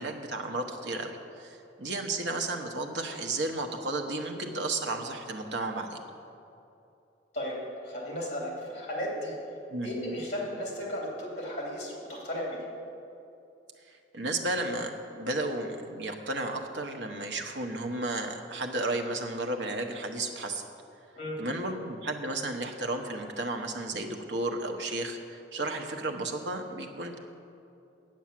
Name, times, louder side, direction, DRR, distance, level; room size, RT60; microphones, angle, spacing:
voice 1, 0.0-6.0 9.7-9.9 13.9-20.6 21.4-27.2, right 2 dB, 75° right, 4 dB, 1.0 m, -33 dB
voice 2, 7.8-9.3 9.8-12.6 21.2-21.4, equal, 35° left, -3 dB, 3.0 m, -35 dB
8.9 x 8.4 x 7.5 m, 2.7 s
head